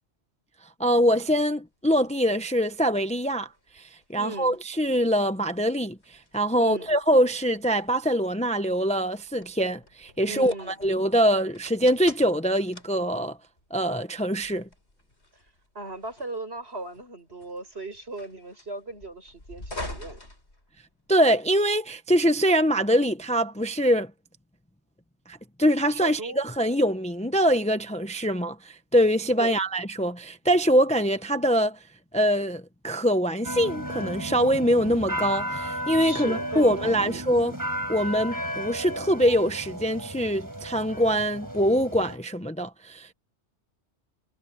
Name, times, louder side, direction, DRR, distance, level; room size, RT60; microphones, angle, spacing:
voice 1, 0.8-3.5 3.7-13.4 13.7-14.7 21.1-24.1 25.3-31.8 32.1-37.6 37.9-43.1, equal, 5° left, 0.9 m, -24 dB
sound 1, 1.8-21.2, left 1 dB, 65° left, 5.5 m, -47 dB
voice 2, 4.1-4.6 6.6-6.9 10.3-10.8 15.8-20.2 25.9-26.4 29.4-29.6 36.0-37.2, right 2 dB, 60° right, 6.9 m, -37 dB
sound 2, 33.4-42.2, equal, 15° right, 5.7 m, -34 dB
omnidirectional pair, 1.2 m